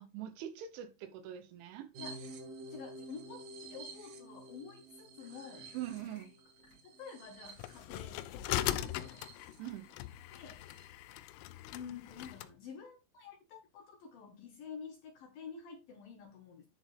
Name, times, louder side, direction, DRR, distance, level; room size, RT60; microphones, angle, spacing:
voice 1, 0.0-1.9 5.7-6.3 9.6-9.9, right 11 dB, 75° right, 3.3 m, -43 dB
sound 1, 1.9-9.6 10.0-10.1 10.4-10.9, right 2 dB, 60° right, 2.3 m, -50 dB
voice 2, 2.7-5.7 6.8-9.2 10.3-10.6 11.7-16.7, left 6 dB, 65° left, 2.4 m, -49 dB
sound 2, 5.2-6.8 7.2-8.4 9.6-10.1, left 3 dB, 30° left, 2.4 m, -62 dB
sound 3, 7.6-12.5, left 13 dB, 90° left, 3.3 m, -39 dB
10.0 x 6.4 x 3.4 m
omnidirectional pair, 5.8 m